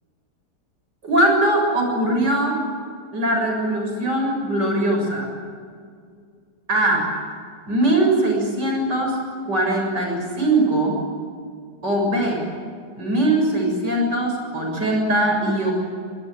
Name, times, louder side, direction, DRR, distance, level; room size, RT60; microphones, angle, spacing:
voice 1, 1.0-2.6 3.1-5.3 6.7-7.1 7.7-11.0 11.8-12.5 13.0-15.7, right 1 dB, 75° right, 1 dB, 7.8 m, -21 dB
24.0 x 19.0 x 9.3 m, 2.1 s
omnidirectional pair, 1.9 m